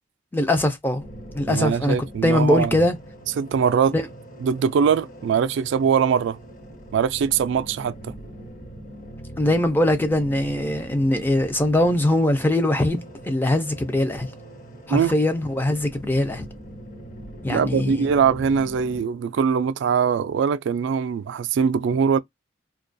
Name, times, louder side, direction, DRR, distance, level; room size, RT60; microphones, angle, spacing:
voice 1, 0.3-1.0 1.3-2.0 2.2-3.0 3.9-4.1 9.4-14.3 14.9-16.5 17.4-18.1, left 1 dB, 10° left, 0.4 m, -21 dB
sound 1, 1.0-19.0, right 1 dB, 45° left, 1.0 m, -42 dB
voice 2, 1.5-2.8 3.4-3.9 4.4-6.4 6.9-7.9 14.9-15.1 17.5-22.2, right 6 dB, 65° right, 0.3 m, -22 dB
2.3 x 2.1 x 2.5 m
head